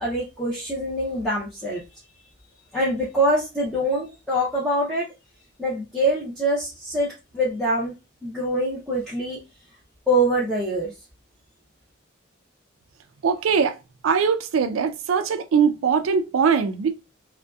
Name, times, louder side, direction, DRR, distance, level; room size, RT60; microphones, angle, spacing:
voice 1, 0.0-1.8 2.7-5.1 5.6-7.9 8.2-9.4 10.1-10.9, right 1 dB, ahead, 0.5 m, -24 dB
voice 2, 13.2-13.8 14.0-16.9, right 6 dB, 80° right, 0.4 m, -21 dB
2.6 x 2.1 x 2.3 m
head